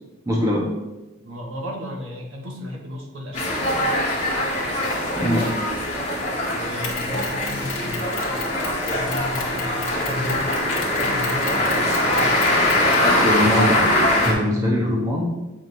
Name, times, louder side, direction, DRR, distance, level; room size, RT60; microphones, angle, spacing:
voice 1, 0.3-0.7 5.2-5.5 13.0-13.8 14.2-15.3, left 1 dB, 15° right, -3 dB, 0.9 m, -21 dB
voice 2, 1.2-3.6 6.4-8.3 8.9-10.5 11.0-12.5, left 1 dB, 70° right, 0 dB, 1.0 m, -34 dB
sound 1, 3.3-14.3, left 1 dB, 30° left, 1.5 m, -22 dB
Mechanisms, 6.8-13.1, left 4 dB, 65° left, 1.1 m, -35 dB
7.4 x 4.8 x 2.6 m, 1.1 s
head